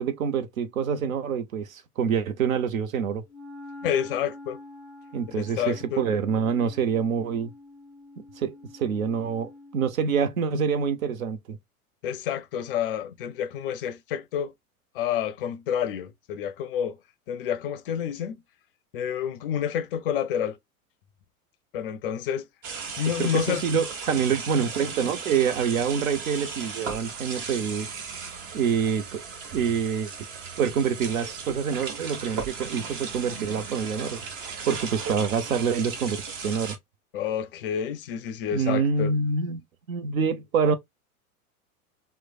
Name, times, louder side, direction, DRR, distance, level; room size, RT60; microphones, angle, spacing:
voice 1, 0.0-3.2 5.1-7.5 8.4-11.6 23.2-27.9 28.5-29.3 29.5-30.1 30.6-34.2 34.7-36.8 38.5-39.6 39.9-40.8, right 6 dB, 65° right, 0.7 m, -26 dB
Wind instrument woodwind instrument, 3.3-10.0, left 2 dB, 5° left, 1.0 m, -46 dB
voice 2, 3.8-4.6 5.4-6.0 12.0-14.5 14.9-17.0 17.3-18.4 18.9-20.6 21.7-22.5 23.0-23.6 37.1-39.1, left 9 dB, 40° left, 0.5 m, -29 dB
sound 1, 22.6-36.8, right 5 dB, 25° right, 0.5 m, -36 dB
3.0 x 2.1 x 2.3 m
figure-of-eight pair, 95°, 44 cm